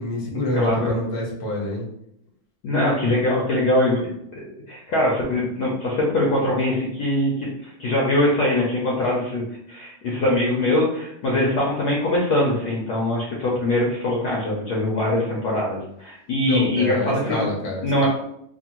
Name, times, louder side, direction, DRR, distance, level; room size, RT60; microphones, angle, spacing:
voice 1, 0.0-1.8 16.5-18.1, left 1 dB, 50° left, -3 dB, 0.6 m, -27 dB
voice 2, 0.5-0.9 2.6-4.4 4.7-9.4 9.7-17.4 17.8-18.1, left 1 dB, 70° left, -4 dB, 1.0 m, -22 dB
3.4 x 2.2 x 2.9 m, 0.74 s
omnidirectional pair, 2.3 m